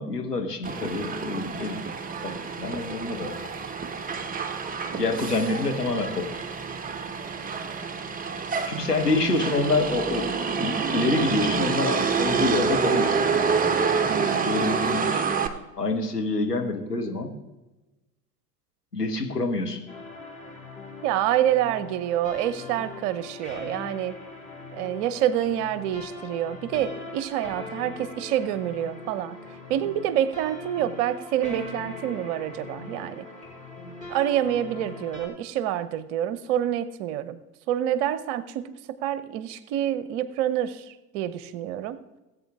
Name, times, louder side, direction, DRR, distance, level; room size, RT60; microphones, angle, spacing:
voice 1, 0.0-1.8 2.2-3.3 5.0-6.3 8.7-13.1 14.4-15.2 15.8-17.3 18.9-19.8, left 3 dB, 90° left, 3 dB, 1.3 m, -27 dB
Motor vehicle (road), 0.6-15.5, right 5 dB, 20° right, 1.0 m, -27 dB
voice 2, 14.1-14.6 21.0-24.2 24.8-29.4 29.7-33.2 34.1-37.4 37.7-42.0, right 11 dB, 50° right, 15 dB, 0.9 m, -27 dB
sound 1, 19.9-35.3, left 3 dB, 15° left, 4.9 m, -41 dB
18.0 x 8.2 x 3.6 m, 1.1 s
figure-of-eight pair, 70°, 46 cm